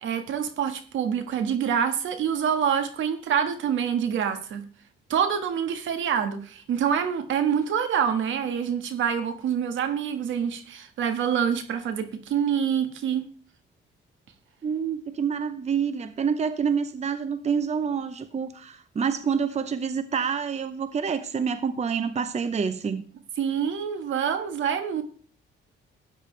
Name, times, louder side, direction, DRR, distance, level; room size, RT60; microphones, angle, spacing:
voice 1, 0.0-4.6 5.1-13.2 23.4-25.0, right 8 dB, 75° right, 8 dB, 1.5 m, -26 dB
voice 2, 14.6-23.0, right 6 dB, 35° right, 12 dB, 0.8 m, -27 dB
13.0 x 9.5 x 3.3 m, 0.41 s
cardioid pair, 90°, 20 cm